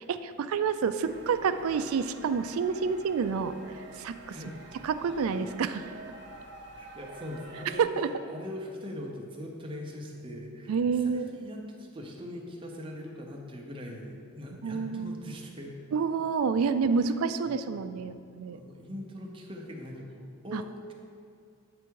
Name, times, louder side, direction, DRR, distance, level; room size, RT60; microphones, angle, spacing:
voice 1, 0.0-3.5 4.0-4.4 4.8-5.8 7.8-8.1 10.7-11.3 14.6-15.3 15.9-18.6 20.5-20.6, right 5 dB, 90° right, 11 dB, 0.3 m, -28 dB
sound 1, 1.0-7.8, right 2 dB, 55° right, 0.8 m, -48 dB
voice 2, 6.8-15.7 17.0-17.1 17.5-17.7 18.5-20.9, left 1 dB, 25° right, 0 dB, 0.7 m, -41 dB
8.6 x 3.4 x 4.6 m, 2.3 s
head